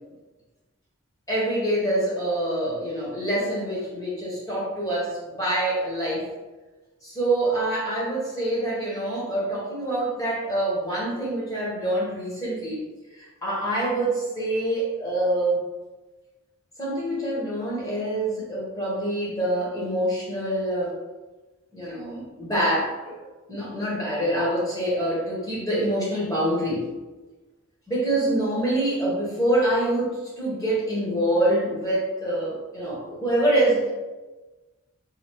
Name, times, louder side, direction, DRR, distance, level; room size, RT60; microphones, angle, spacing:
voice 1, 1.3-6.3 7.0-12.9 13.1-15.6 16.8-20.9 21.7-26.9 27.9-33.9, right 1 dB, 15° left, -7 dB, 1.3 m, -25 dB
4.0 x 2.7 x 3.4 m, 1.2 s
head